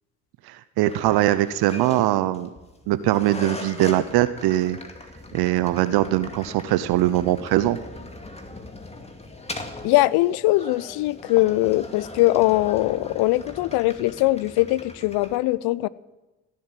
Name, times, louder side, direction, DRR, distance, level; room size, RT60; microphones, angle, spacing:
voice 1, 0.5-2.5 2.9-4.8 5.3-7.8, right 14 dB, 65° right, 0.8 m, -21 dB
sound 1, 0.8-15.4, left 2 dB, 15° left, 2.3 m, -39 dB
voice 2, 9.8-15.9, left 18 dB, 70° left, 0.6 m, -21 dB
16.0 x 7.6 x 9.1 m
hypercardioid pair, 55°, 40 cm